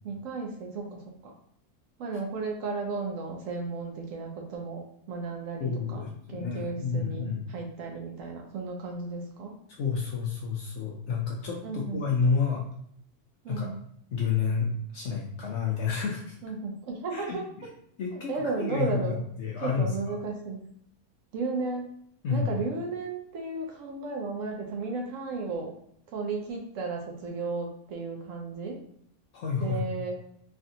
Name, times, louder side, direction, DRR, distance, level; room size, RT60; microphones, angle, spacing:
voice 1, 0.0-1.3 2.0-6.0 6.3-9.5 11.6-12.1 13.4-13.8 16.4-17.4 18.1-19.2 19.6-20.7 21.3-21.9 22.3-25.7 26.1-28.8 29.6-30.1, right 4 dB, 65° right, 1 dB, 0.9 m, -34 dB
voice 2, 5.6-7.4 9.7-12.6 13.5-13.7 14.1-16.4 17.1-17.4 18.0-18.3 18.6-18.9 19.4-20.1 22.2-22.5 29.3-29.8, left 5 dB, 65° left, -2 dB, 0.7 m, -29 dB
3.4 x 2.4 x 2.7 m, 0.69 s
omnidirectional pair, 1.6 m